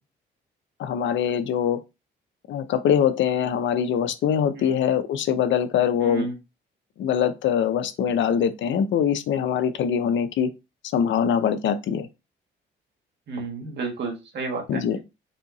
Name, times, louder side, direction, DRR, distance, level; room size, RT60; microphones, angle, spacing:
voice 1, 0.8-1.8 2.5-6.3 7.0-10.5 10.9-12.1 14.7-15.0, left 8 dB, 70° left, 0.7 m, -23 dB
voice 2, 6.0-6.4 13.3-14.8, right 3 dB, 60° right, 1.5 m, -31 dB
4.3 x 2.7 x 4.0 m
cardioid pair, 90°, 20 cm